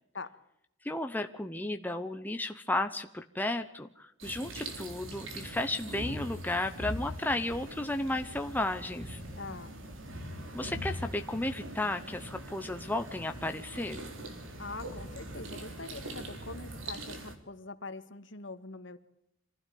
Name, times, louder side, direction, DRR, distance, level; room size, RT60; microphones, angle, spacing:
voice 1, 0.8-9.2 10.5-14.0, left 2 dB, 10° left, 6 dB, 1.0 m, -33 dB
sound 1, 4.2-17.4, right 1 dB, 75° right, 3.7 m, -42 dB
voice 2, 9.4-9.7 14.6-19.0, left 3 dB, 60° left, 10 dB, 1.7 m, -43 dB
25.5 x 16.0 x 8.6 m, 0.77 s
head